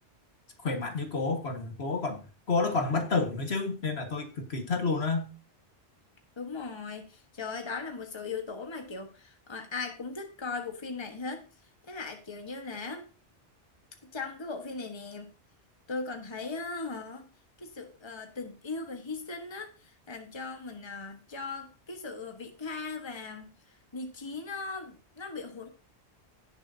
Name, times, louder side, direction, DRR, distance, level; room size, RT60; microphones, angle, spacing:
voice 1, 0.6-2.2 2.5-5.3, left 3 dB, 70° left, 5 dB, 1.9 m, -29 dB
voice 2, 6.4-11.5 11.9-13.1 14.1-15.3 15.9-17.3 17.6-23.5 23.9-25.7, left 4 dB, 25° left, 5 dB, 1.4 m, -38 dB
17.5 x 6.7 x 2.8 m, 0.32 s
omnidirectional pair, 1.1 m